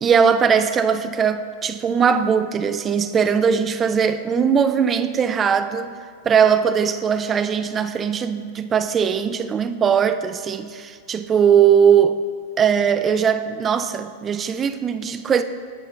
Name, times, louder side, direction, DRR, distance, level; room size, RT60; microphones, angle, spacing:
voice 1, 0.0-6.0 6.2-12.2 12.6-15.4, right 7 dB, 25° right, 0.3 m, -19 dB
10.5 x 3.8 x 3.0 m
hypercardioid pair, 115°, 0 cm